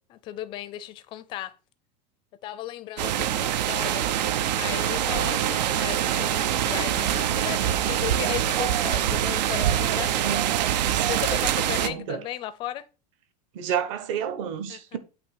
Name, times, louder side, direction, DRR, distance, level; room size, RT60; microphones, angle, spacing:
voice 1, 0.1-1.6 2.4-4.1 4.6-10.4 11.0-12.8 14.7-14.8, left 13 dB, 25° left, 0.5 m, -35 dB
sound 1, 3.0-11.9, right 11 dB, 85° right, 0.8 m, -25 dB
sound 2, 3.1-8.3, right 9 dB, 30° right, 0.6 m, -35 dB
voice 2, 11.8-12.2 13.5-15.0, right 8 dB, 50° right, 1.2 m, -30 dB
8.6 x 2.9 x 6.3 m
supercardioid pair, 175°, 21 cm